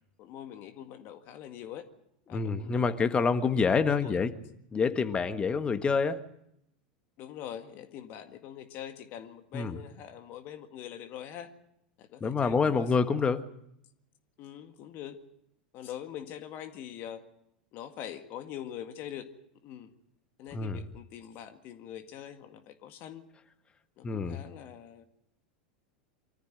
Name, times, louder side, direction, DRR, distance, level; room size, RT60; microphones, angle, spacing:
voice 1, 0.2-1.9 2.3-4.2 7.2-11.5 12.0-12.9 14.4-15.2 15.7-17.2 17.7-19.3 19.6-19.9 20.4-23.2 24.0-25.0, left 10 dB, 50° left, 8 dB, 1.8 m, -43 dB
voice 2, 2.3-4.3 4.7-6.2 9.5-9.8 12.2-13.4 20.5-20.8 24.0-24.4, left 5 dB, 20° left, 10 dB, 1.6 m, -27 dB
24.0 x 14.0 x 9.1 m, 0.78 s
hypercardioid pair, 85°, 5 cm